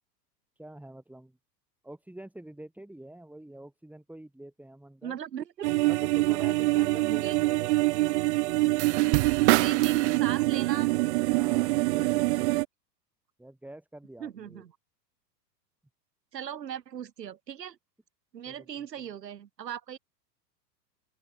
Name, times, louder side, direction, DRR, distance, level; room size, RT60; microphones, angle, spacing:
voice 1, 0.6-1.4 1.8-5.2 5.9-7.9 11.3-12.5 13.4-14.6 18.5-18.8, right 1 dB, 5° right, 4.3 m, -46 dB
voice 2, 5.0-5.7 7.0-7.4 9.4-10.9 14.2-14.7 16.3-17.8 18.3-20.0, right 9 dB, 75° right, 4.3 m, -38 dB
sound 1, 5.6-12.6, right 21 dB, 45° right, 0.4 m, -24 dB
open air
hypercardioid pair, 100°, 49 cm